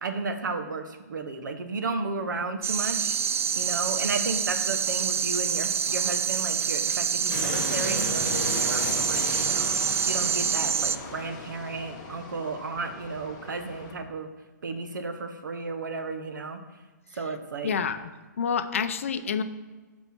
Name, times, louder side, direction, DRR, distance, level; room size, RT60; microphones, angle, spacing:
voice 1, 0.0-3.1 3.6-9.7 10.1-14.3 14.6-16.6 17.2-17.8, right 3 dB, 80° right, 7 dB, 1.1 m, -33 dB
sound 1, 2.6-11.0, right 7 dB, 45° right, 0.3 m, -27 dB
sound 2, 7.3-13.9, left 3 dB, 25° left, 1.1 m, -35 dB
voice 2, 17.6-18.1 18.4-19.4, left 6 dB, 45° left, 10 dB, 0.5 m, -28 dB
9.7 x 4.5 x 4.3 m, 1.3 s
hypercardioid pair, 175°, 10 cm